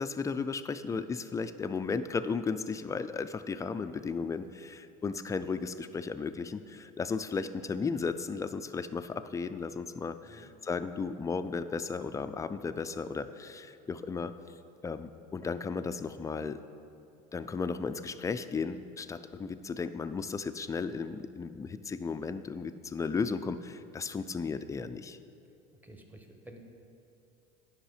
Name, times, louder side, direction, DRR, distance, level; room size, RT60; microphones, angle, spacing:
voice 1, 0.0-14.3 14.8-16.6 17.3-25.2, left 5 dB, 15° left, 11 dB, 0.3 m, -35 dB
voice 2, 25.8-26.6, right 1 dB, 10° right, 3 dB, 1.1 m, -51 dB
10.0 x 5.5 x 5.0 m, 2.6 s
supercardioid pair, 100°, 20 cm